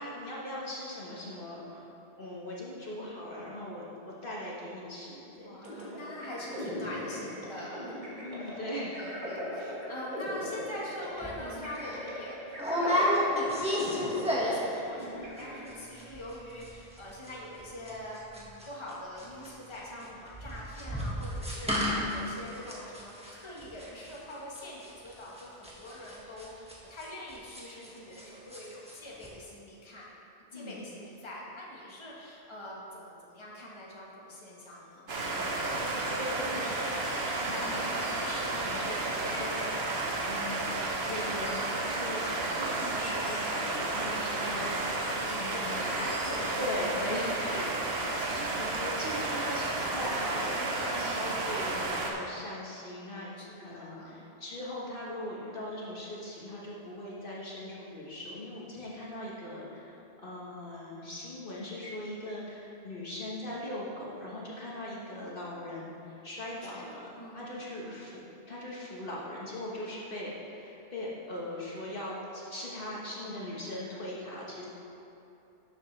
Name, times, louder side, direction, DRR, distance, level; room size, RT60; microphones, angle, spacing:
voice 1, 0.0-1.9 2.2-5.6 8.2-9.0 30.5-30.8 36.1-36.9 37.3-42.3 42.6-45.0 45.3-45.9 46.6-47.9 48.6-68.2 68.5-74.7, left 1 dB, 55° left, -5 dB, 1.5 m, -40 dB
voice 2, 5.4-8.0 8.4-8.6 9.0-30.1 30.5-35.1 43.6-44.4 45.1-46.6 47.0-47.1 47.4-47.9 50.9-51.3 53.4-54.2 66.6-67.4 73.1-73.2, left 1 dB, 25° left, -5 dB, 1.4 m, -44 dB
sound 1, 5.6-16.1, left 1 dB, 45° right, 1.9 m, -39 dB
sound 2, 11.2-11.4 11.8-11.9 12.6-14.7 15.0-15.4 15.7-15.8 16.0-16.3 16.6-28.2 28.5-28.9 29.2-29.3, left 1 dB, 5° right, 1.5 m, -32 dB
sound 3, 35.1-52.1, right 2 dB, 70° right, 1.3 m, -32 dB
12.5 x 7.5 x 3.3 m, 2.9 s
omnidirectional pair, 1.1 m